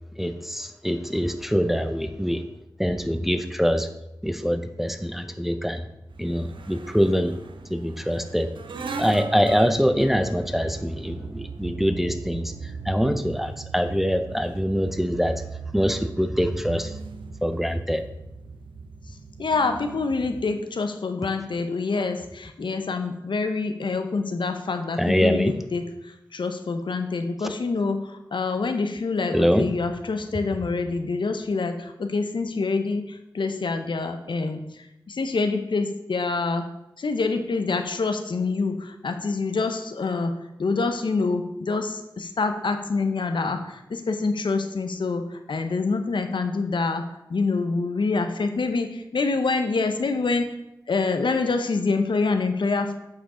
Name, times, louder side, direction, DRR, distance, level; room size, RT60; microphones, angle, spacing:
voice 1, 0.2-2.4 2.8-3.9 4.2-5.9 6.2-7.3 7.7-8.5 9.0-12.5 12.9-15.4 15.7-16.9 17.4-18.0 25.0-25.5 29.3-29.7, equal, 5° right, 8 dB, 0.6 m, -24 dB
sound 1, 6.1-20.5, right 4 dB, 90° right, 0.6 m, -38 dB
voice 2, 19.4-36.7 37.0-40.3 40.6-50.6 50.9-52.9, left 4 dB, 75° left, 7 dB, 0.7 m, -26 dB
8.5 x 5.1 x 3.7 m, 0.87 s
cardioid pair, 40°, 8 cm